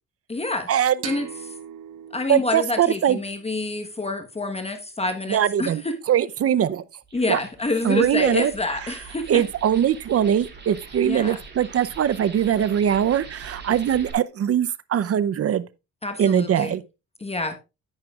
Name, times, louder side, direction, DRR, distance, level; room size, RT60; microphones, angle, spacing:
voice 1, 0.3-0.7 1.0-1.5 2.1-6.0 7.1-9.4 11.0-11.4 16.0-16.8 17.2-17.6, left 2 dB, 20° left, 1.2 m, -27 dB
sound 1, 1.0-4.4, right 10 dB, 85° right, 1.1 m, -41 dB
voice 2, 2.3-3.2 5.3-5.8 6.1-6.8 7.3-7.4 7.8-8.5 9.3-15.7 16.2-16.8, right 9 dB, 50° right, 0.7 m, -21 dB
sound 2, 7.0-14.1, right 5 dB, 35° right, 2.8 m, -43 dB
10.5 x 9.5 x 2.4 m
cardioid pair, 90°, 30 cm